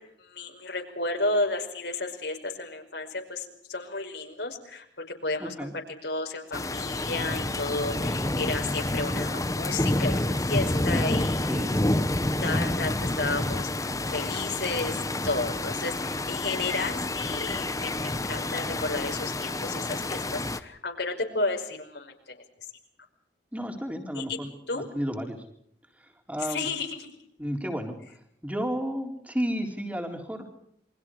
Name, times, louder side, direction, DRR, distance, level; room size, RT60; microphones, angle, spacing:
voice 1, 0.0-4.8 5.2-5.7 6.0-11.6 12.4-15.0 15.2-22.7 24.2-24.4 24.7-24.8 26.4-27.1, left 3 dB, 70° left, 2 dB, 5.4 m, -32 dB
voice 2, 5.4-5.7 11.5-11.8 23.5-25.4 26.3-26.7 27.4-28.0 28.4-30.5, equal, 10° right, 3 dB, 4.0 m, -32 dB
sound 1, 6.5-20.6, left 1 dB, 20° left, 1.1 m, -28 dB
28.5 x 24.5 x 4.9 m, 0.71 s
head